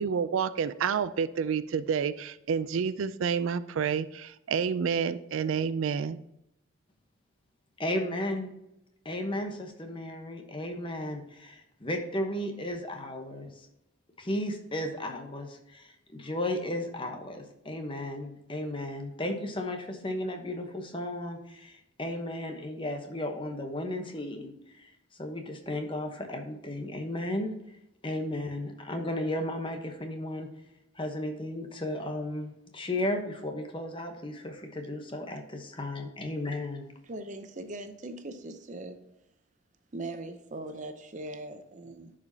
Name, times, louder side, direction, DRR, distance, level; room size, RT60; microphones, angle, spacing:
voice 1, 0.0-6.2, right 6 dB, 75° right, 15 dB, 0.4 m, -29 dB
voice 2, 7.8-8.6 9.0-13.7 14.2-27.5 28.0-30.5 30.9-36.9, left 1 dB, 25° left, 4 dB, 1.0 m, -34 dB
voice 3, 37.0-39.0 39.9-42.1, right 2 dB, 35° right, 8 dB, 0.6 m, -40 dB
10.5 x 5.0 x 2.8 m, 0.85 s
head